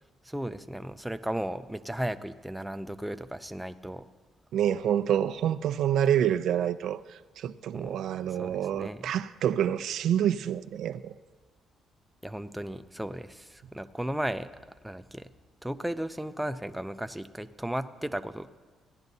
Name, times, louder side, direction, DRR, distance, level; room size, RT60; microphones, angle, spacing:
voice 1, 0.2-4.0 7.7-8.0 8.3-9.1 12.2-14.5 14.8-15.3 15.6-18.5, right 1 dB, 5° right, 0.4 m, -35 dB
voice 2, 4.5-11.2, right 10 dB, 75° right, 0.3 m, -27 dB
16.5 x 10.5 x 2.7 m
cardioid pair, 95°, 0 cm